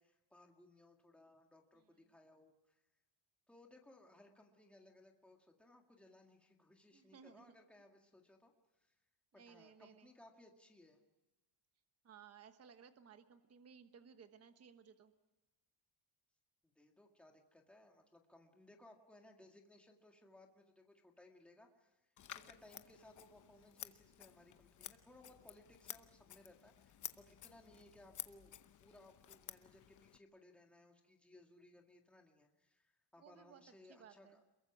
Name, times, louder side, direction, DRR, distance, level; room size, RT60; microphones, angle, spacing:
voice 1, 0.0-2.8 3.5-8.5 8.8-8.9 9.3-11.0 16.6-28.5 28.8-34.4, left 1 dB, ahead, 2 dB, 1.9 m, -63 dB
voice 2, 6.9-7.5 9.3-10.1 12.0-15.1 33.2-33.6 33.9-34.4, right 7 dB, 30° right, 8 dB, 1.2 m, -60 dB
Scissors, 22.2-30.2, left 10 dB, 35° left, 0.9 m, -53 dB
28.0 x 22.5 x 6.0 m, 1.1 s
cardioid pair, 180°, 49 cm